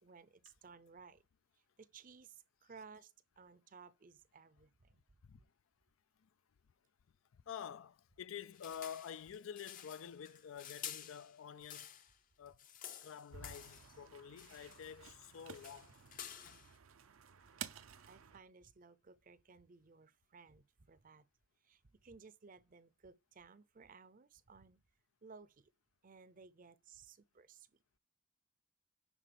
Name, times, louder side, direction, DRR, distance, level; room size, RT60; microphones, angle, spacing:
voice 1, 0.0-1.2 1.8-5.0 18.1-21.3 21.6-24.8 25.2-25.7 26.0-28.0, right 5 dB, 40° right, 0.6 m, -59 dB
voice 2, 7.3-12.0 12.4-12.7 13.0-16.0 16.4-16.6, left 8 dB, 75° left, 0.4 m, -49 dB
sound 1, 8.5-12.2 12.5-14.0 14.4-15.0 15.2-16.7, left 9 dB, 40° left, 0.7 m, -51 dB
sound 2, 13.3-18.4, right 8 dB, 80° right, 0.7 m, -53 dB
10.0 x 4.0 x 6.8 m
head